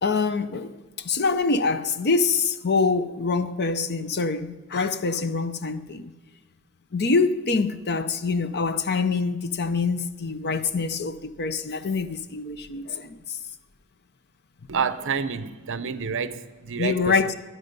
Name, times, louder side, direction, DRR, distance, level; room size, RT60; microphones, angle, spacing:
voice 1, 0.0-6.1 6.9-13.4 16.8-17.3, left 4 dB, 50° left, 0.7 m, -25 dB
voice 2, 14.7-17.2, right 6 dB, 60° right, 0.7 m, -28 dB
19.5 x 11.0 x 5.3 m
head